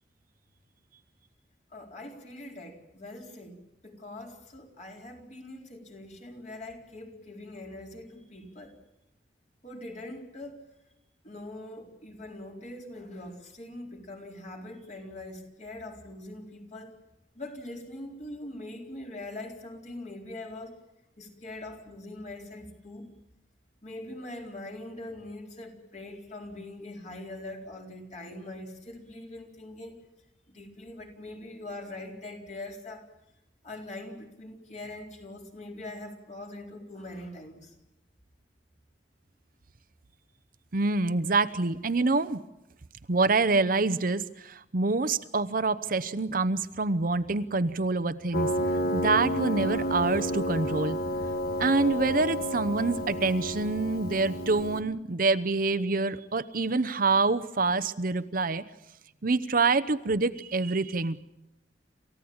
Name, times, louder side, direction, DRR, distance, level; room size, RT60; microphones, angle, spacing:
voice 1, 1.7-8.8 9.6-10.6 11.2-17.0 17.3-20.8 21.2-23.1 23.8-30.0 30.5-33.1 33.6-37.7, left 1 dB, 40° left, 1 dB, 4.2 m, -42 dB
voice 2, 40.7-42.4 43.1-48.5 48.9-51.0 51.6-58.6 59.2-61.2, right 3 dB, 55° right, 13 dB, 0.8 m, -26 dB
Piano, 48.3-54.8, equal, 60° left, 1.7 m, -30 dB
28.0 x 15.5 x 8.7 m, 0.89 s
head